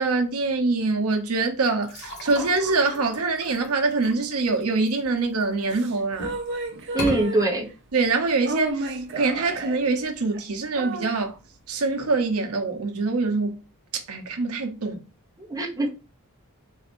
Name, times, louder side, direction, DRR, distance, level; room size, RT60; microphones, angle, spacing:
voice 1, 0.0-6.3 7.9-11.4 11.7-13.6 13.9-15.0, right 3 dB, 90° right, 0.8 m, -24 dB
sound 1, 1.8-5.6 6.1-6.5 6.9-7.2, left 1 dB, 50° left, 1.5 m, -36 dB
sound 2, 5.6-7.7 8.3-9.9 10.3-10.4 10.8-11.1, right 2 dB, 55° right, 0.8 m, -32 dB
voice 2, 6.9-7.7 15.5-15.9, right 2 dB, 15° right, 0.9 m, -23 dB
4.1 x 2.5 x 4.3 m
head